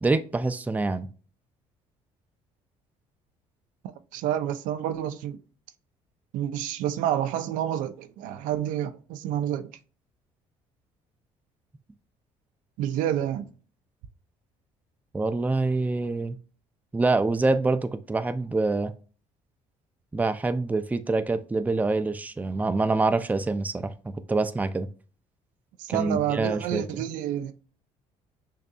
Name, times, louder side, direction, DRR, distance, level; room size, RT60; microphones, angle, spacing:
voice 1, 0.0-1.1 15.1-16.4 16.9-18.9 20.1-24.9 25.9-27.0, right 3 dB, 10° right, 0.4 m, -26 dB
voice 2, 4.1-5.4 6.3-9.7 12.8-13.5 25.8-27.5, right 11 dB, 80° right, 0.5 m, -29 dB
6.6 x 2.6 x 2.3 m
supercardioid pair, 85°, 13 cm